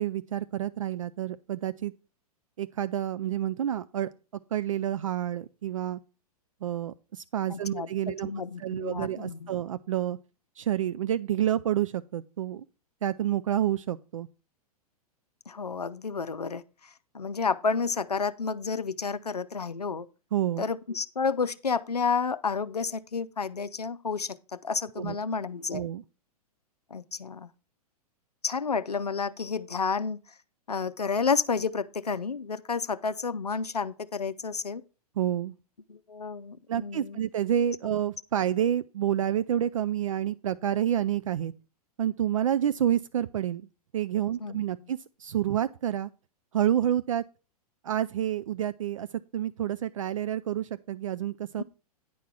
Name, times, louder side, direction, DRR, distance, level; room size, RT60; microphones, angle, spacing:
voice 1, 0.0-1.9 2.6-4.1 4.5-6.0 6.6-8.3 8.6-10.2 10.6-12.7 13.0-14.3 20.3-20.6 25.0-25.2 25.7-26.0 35.2-35.5 36.7-41.5 42.0-43.7 43.9-46.1 46.5-47.2 47.8-49.1 49.3-51.6, right 10 dB, 55° right, 0.4 m, -29 dB
voice 2, 7.5-9.5 15.5-20.1 20.6-25.8 26.9-27.5 28.4-30.2 30.7-34.8 35.9-37.2 44.4-44.6 51.6-51.7, left 5 dB, 80° left, 0.5 m, -31 dB
9.9 x 4.6 x 5.8 m
figure-of-eight pair, 105°, 20 cm